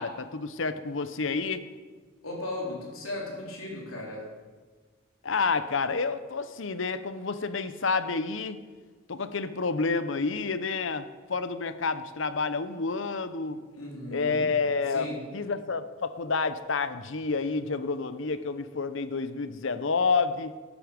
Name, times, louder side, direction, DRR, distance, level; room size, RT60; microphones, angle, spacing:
voice 1, 0.0-1.7 5.2-8.6 9.1-13.6 14.1-20.5, left 4 dB, 60° left, 12 dB, 0.7 m, -29 dB
voice 2, 2.2-4.2 13.4-14.4 14.9-15.2, left 2 dB, 80° left, -2 dB, 3.8 m, -37 dB
12.5 x 12.5 x 5.2 m, 1.4 s
head